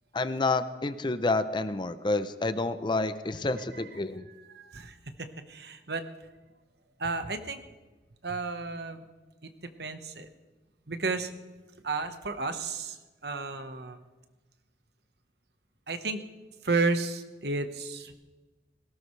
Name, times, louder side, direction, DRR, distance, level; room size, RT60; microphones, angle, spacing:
voice 1, 0.1-4.3, left 3 dB, 25° left, 12 dB, 0.6 m, -29 dB
voice 2, 4.5-6.0 7.0-7.6 8.2-9.0 9.4-10.3 10.9-11.3 11.8-13.0 13.2-14.0 15.9-16.2 16.6-18.2, right 3 dB, 65° right, 8 dB, 1.3 m, -32 dB
19.0 x 17.0 x 3.3 m, 1.2 s
head